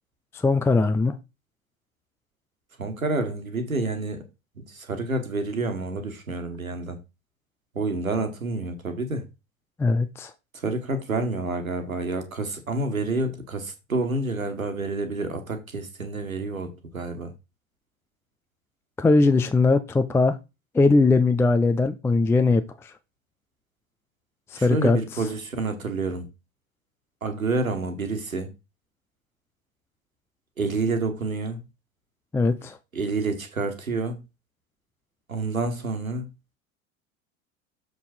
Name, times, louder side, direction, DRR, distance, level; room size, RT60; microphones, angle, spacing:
voice 1, 0.3-1.2 9.8-10.3 19.0-20.4 20.7-22.9 24.5-25.0 32.3-32.8, left 3 dB, 5° left, 0.5 m, -20 dB
voice 2, 2.8-4.2 4.6-7.0 7.8-9.2 10.5-17.3 24.5-26.2 27.2-28.5 30.6-31.6 32.9-34.2 35.3-36.3, right 3 dB, 85° right, 1.7 m, -28 dB
7.2 x 5.4 x 4.4 m
figure-of-eight pair, 75°, 40 cm